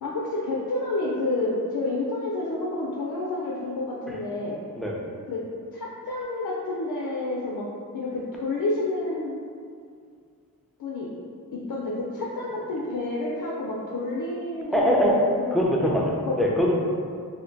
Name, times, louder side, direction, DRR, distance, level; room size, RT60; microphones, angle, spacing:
voice 1, 0.0-4.6 5.3-5.4 5.7-7.6 7.9-9.4 10.8-11.1 11.5-15.6 16.2-16.4, left 2 dB, 75° left, -4 dB, 0.5 m, -29 dB
voice 2, 14.7-15.2 15.5-16.7, equal, ahead, -3 dB, 0.4 m, -22 dB
2.7 x 2.1 x 3.8 m, 2.2 s
wide cardioid pair, 80°, 35 cm